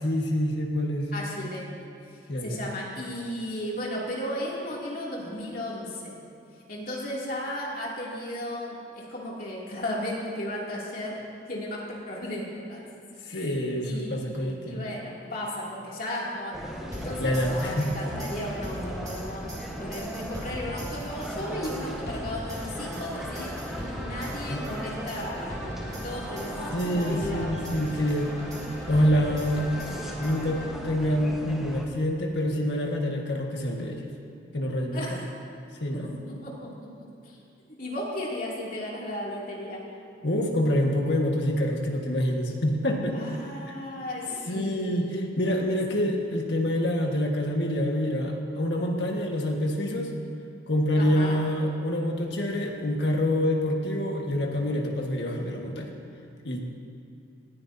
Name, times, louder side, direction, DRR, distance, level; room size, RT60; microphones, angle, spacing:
voice 1, 0.0-1.1 2.3-2.6 13.3-14.8 17.2-17.9 24.5-24.7 26.7-28.3 28.9-29.8 30.2-34.0 34.5-35.0 35.8-36.1 40.2-43.2 44.5-50.1 50.7-55.9 56.4-56.6, equal, 65° left, 0 dB, 1.7 m, -26 dB
voice 2, 1.1-1.6 2.4-6.2 6.7-11.2 11.5-12.9 13.3-13.5 13.8-16.6 16.9-19.4 19.8-23.5 24.0-27.5 34.9-35.2 35.9-36.0 36.4-36.9 37.2-37.4 37.7-39.8 43.1-45.3 50.9-51.4, left 1 dB, 50° left, -5 dB, 2.9 m, -35 dB
sound 1, 16.5-31.9, equal, ahead, 1.3 m, -37 dB
sound 2, 16.9-31.0, equal, 20° right, 2.3 m, -40 dB
19.5 x 14.5 x 2.8 m, 2.5 s
head